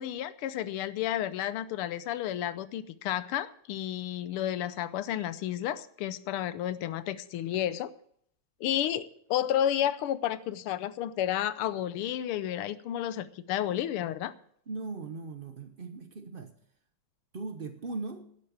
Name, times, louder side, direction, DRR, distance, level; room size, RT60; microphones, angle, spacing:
voice 1, 0.0-7.9 8.6-14.3, left 11 dB, 85° left, 15 dB, 1.6 m, -31 dB
voice 2, 14.7-16.5 17.3-18.3, right 3 dB, 90° right, 8 dB, 0.4 m, -39 dB
12.0 x 8.4 x 8.6 m, 0.64 s
omnidirectional pair, 2.4 m